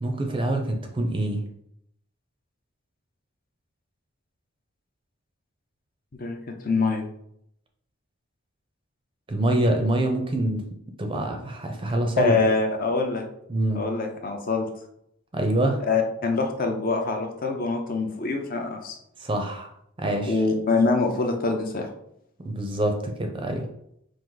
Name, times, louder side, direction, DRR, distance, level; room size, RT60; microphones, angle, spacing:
voice 1, 0.0-1.4 9.3-10.6 11.0-12.4 13.5-13.8 15.3-15.8 19.2-19.7 20.0-20.4 22.4-23.7, right 1 dB, 25° right, 3 dB, 0.5 m, -25 dB
voice 2, 6.1-7.1 12.2-13.2 13.7-14.7 15.9-19.0 20.2-21.9, left 3 dB, 40° left, 3 dB, 0.6 m, -24 dB
4.6 x 2.5 x 3.8 m, 0.74 s
head